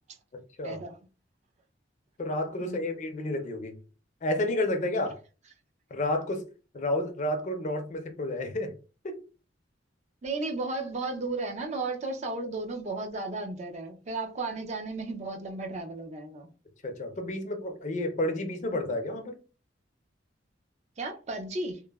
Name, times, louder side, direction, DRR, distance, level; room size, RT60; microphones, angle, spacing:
voice 1, 0.6-1.0 2.6-2.9 10.2-16.5 21.0-21.8, right 3 dB, 35° right, 0.4 m, -34 dB
voice 2, 2.2-3.7 4.2-5.2 5.9-6.4 6.7-8.7 9.0-9.2 16.8-19.4, left 1 dB, 40° left, 0.4 m, -30 dB
3.0 x 2.0 x 2.2 m
head